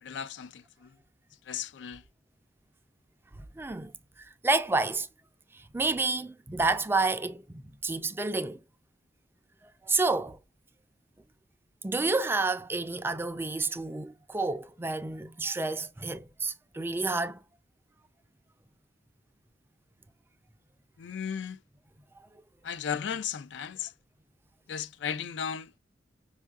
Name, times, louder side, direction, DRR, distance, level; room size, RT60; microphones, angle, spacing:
voice 1, 0.0-0.9 1.5-2.0 21.0-21.6 22.6-23.9 24.7-25.8, left 7 dB, 85° left, 0.4 m, -35 dB
voice 2, 3.6-3.9 4.2-5.1 5.5-8.6 9.8-10.4 11.8-17.4, right 3 dB, 15° right, 0.3 m, -29 dB
5.3 x 2.4 x 2.3 m
head